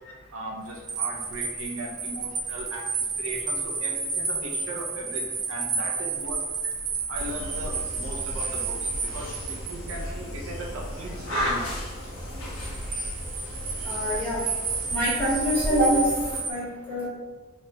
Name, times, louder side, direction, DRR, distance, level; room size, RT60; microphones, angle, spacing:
voice 1, 0.3-6.4 7.1-11.6, right 1 dB, 75° right, -1 dB, 0.5 m, -38 dB
sound 1, 0.7-10.0 12.5-16.5, right 4 dB, 20° right, 0.3 m, -31 dB
sound 2, 7.1-16.4, equal, 85° left, 1.1 m, -34 dB
voice 2, 13.8-14.4 14.9-16.1 16.5-17.1, equal, 10° left, -11 dB, 1.3 m, -25 dB
3.1 x 2.8 x 2.2 m, 1.3 s
head